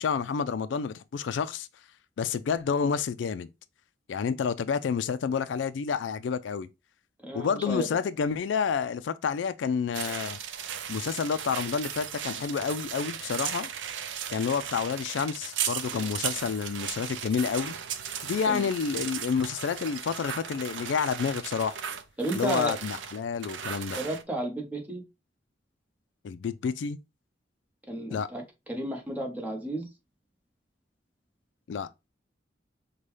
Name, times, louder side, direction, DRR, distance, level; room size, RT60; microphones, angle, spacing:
voice 1, 0.0-1.7 2.2-3.5 4.1-6.7 7.3-10.4 10.9-13.7 14.3-17.8 18.2-21.8 22.3-24.0 26.2-27.0 28.1-28.3 31.7-31.9, left 6 dB, 85° left, 0.3 m, -29 dB
voice 2, 7.2-7.9 15.9-16.1 18.5-18.7 22.2-22.8 23.9-25.0 27.9-29.9, right 1 dB, 10° right, 1.0 m, -33 dB
sound 1, 9.9-24.2, right 8 dB, 90° right, 0.5 m, -36 dB
5.3 x 2.2 x 3.1 m
head